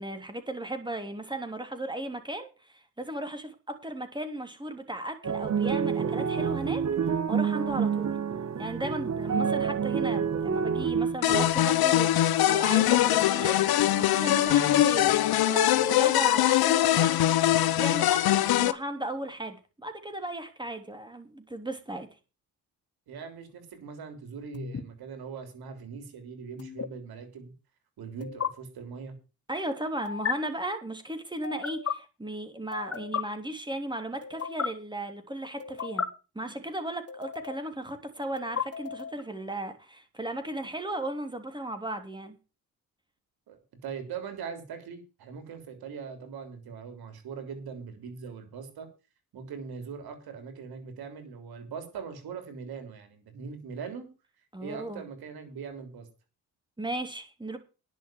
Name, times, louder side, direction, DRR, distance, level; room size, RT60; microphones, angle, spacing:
voice 1, 0.0-6.8 7.3-8.2 8.6-17.2 17.8-22.1 29.5-36.1 36.3-42.4 54.5-55.0 56.8-57.6, right 1 dB, 10° right, 7 dB, 3.1 m, -36 dB
sound 1, 5.2-11.5, right 6 dB, 45° right, 1.5 m, -28 dB
sound 2, 11.2-18.7, left 13 dB, 75° left, 1.1 m, -22 dB
voice 2, 23.1-27.5 28.0-29.1 43.5-43.6 43.8-48.9 49.3-54.1 54.6-56.1, right 6 dB, 80° right, 8 dB, 3.5 m, -41 dB
sound 3, 24.5-24.8 26.6-26.9 28.2-28.5 30.1-30.3 31.4-31.9 32.7-33.2 34.2-34.7 35.6-36.1 37.1-37.7 38.4-39.2, left 7 dB, 40° left, 1.5 m, -33 dB
10.5 x 6.4 x 9.0 m, 0.33 s
cardioid pair, 65°, 37 cm